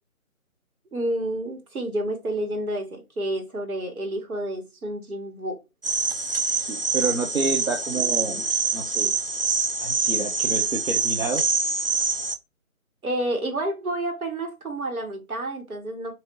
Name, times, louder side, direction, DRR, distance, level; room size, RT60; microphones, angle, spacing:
voice 1, 0.9-5.6 13.0-16.1, right 1 dB, 85° right, 1.8 m, -29 dB
sound 1, 5.8-12.4, right 4 dB, 45° right, 0.4 m, -25 dB
voice 2, 6.6-8.5 8.7-9.2 9.8-11.4, right 3 dB, 70° right, 0.9 m, -29 dB
4.1 x 2.8 x 3.1 m
figure-of-eight pair, 170°, 42 cm